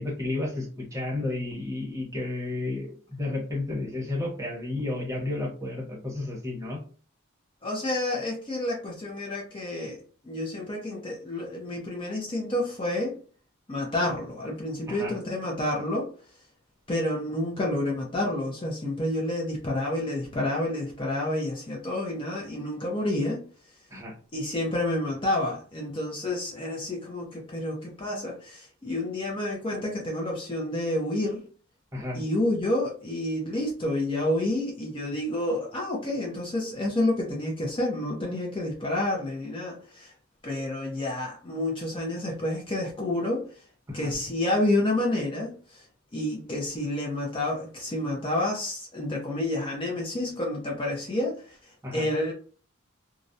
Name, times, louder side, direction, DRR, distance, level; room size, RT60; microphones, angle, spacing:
voice 1, 0.0-6.8 14.9-15.1 23.9-24.1 31.9-32.2 43.9-44.1 51.8-52.0, left 2 dB, 15° right, 0.8 m, -32 dB
voice 2, 7.6-13.2 13.7-16.1 16.9-23.4 24.3-31.4 32.1-40.1 40.4-43.5 43.9-45.8 46.1-51.6 51.9-52.3, left 1 dB, 25° left, 0.5 m, -29 dB
2.4 x 2.1 x 2.6 m
head